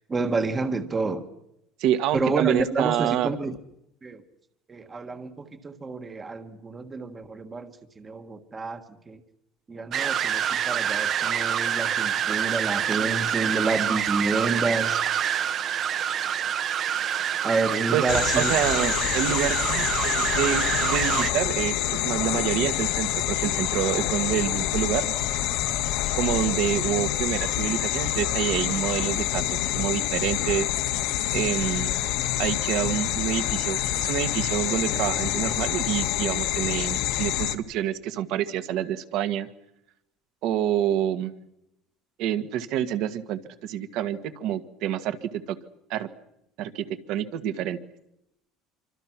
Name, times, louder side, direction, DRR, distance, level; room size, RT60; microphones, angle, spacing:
voice 1, 0.1-1.2 2.1-3.6 4.0-4.2 4.7-9.2 9.7-15.0 17.4-18.5 18.8-18.9, right 3 dB, 15° right, 8 dB, 1.5 m, -29 dB
voice 2, 1.8-3.3 17.9-18.0 18.3-25.1 26.1-30.7 31.3-31.9 32.4-39.5 40.4-41.3 42.2-45.2 45.9-46.1 46.6-47.8, right 11 dB, 55° right, 10 dB, 1.8 m, -27 dB
sound 1, 9.9-21.3, right 9 dB, 35° right, 1.1 m, -26 dB
sound 2, 18.1-37.6, left 13 dB, 70° left, 1.6 m, -27 dB
27.0 x 25.5 x 6.1 m, 0.80 s
cardioid pair, 170°, 0 cm